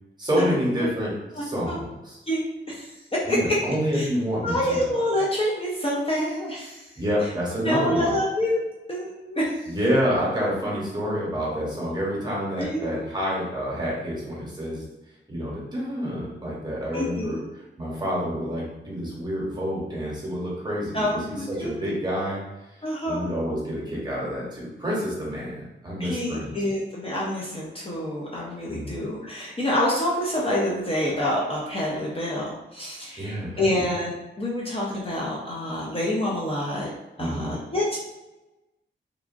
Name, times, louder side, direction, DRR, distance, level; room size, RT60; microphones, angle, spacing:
voice 1, 0.2-1.1 1.4-2.2 3.3-4.9 7.0-8.1 9.7-14.8 15.3-22.4 23.0-26.5 28.7-29.0 33.2-33.8 37.2-37.6, equal, 20° right, -6 dB, 0.9 m, -28 dB
voice 2, 1.4-1.8 2.3-2.4 2.7-2.9 3.3-3.4 3.9-4.1 4.4-6.8 7.6-8.6 8.9-9.5 12.6-13.1 16.9-17.4 20.9-22.0 22.8-23.3 26.0-36.9 37.2-38.0, left 1 dB, 30° left, -5 dB, 0.5 m, -27 dB
2.9 x 2.3 x 2.5 m, 1.0 s
wide cardioid pair, 135°, 20 cm